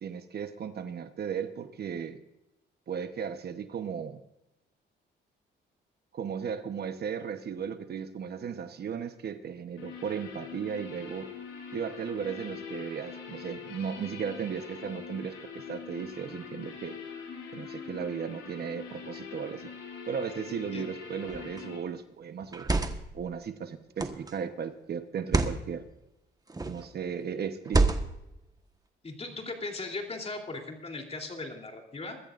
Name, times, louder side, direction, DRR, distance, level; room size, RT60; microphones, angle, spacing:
voice 1, 0.0-2.2 2.9-4.2 6.1-11.3 11.7-17.0 17.5-19.7 20.1-22.7 23.1-25.9 26.6-27.9, right 7 dB, 55° right, 9 dB, 1.1 m, -36 dB
sound 1, 9.8-21.8, left 6 dB, 80° left, 5.3 m, -43 dB
sound 2, 21.3-21.6 22.4-23.2 24.0-24.3 25.2-25.6 26.5-26.9 27.7-28.3, right 3 dB, 20° right, 1.3 m, -27 dB
voice 2, 29.0-32.2, left 3 dB, 30° left, 2 dB, 3.2 m, -38 dB
22.5 x 13.5 x 2.5 m, 0.90 s
cardioid pair, 90°, 20 cm